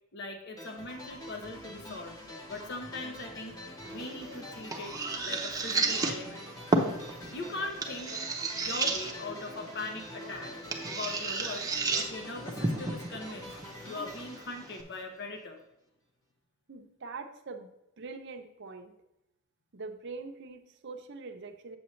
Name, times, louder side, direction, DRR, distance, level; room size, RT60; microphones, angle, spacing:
voice 1, 0.1-2.2 2.5-4.9 5.2-6.5 7.3-8.2 8.6-10.5 10.9-11.7 11.9-13.5 13.8-15.6, left 2 dB, 55° left, 4 dB, 0.9 m, -40 dB
sound 1, 0.6-15.4, left 1 dB, 15° left, 1.1 m, -46 dB
sound 2, 3.8-14.8, right 3 dB, 15° right, 0.7 m, -34 dB
voice 2, 16.7-17.7 18.0-18.9 19.7-21.8, right 4 dB, 55° right, 6 dB, 0.7 m, -43 dB
7.8 x 7.0 x 3.1 m, 0.87 s
head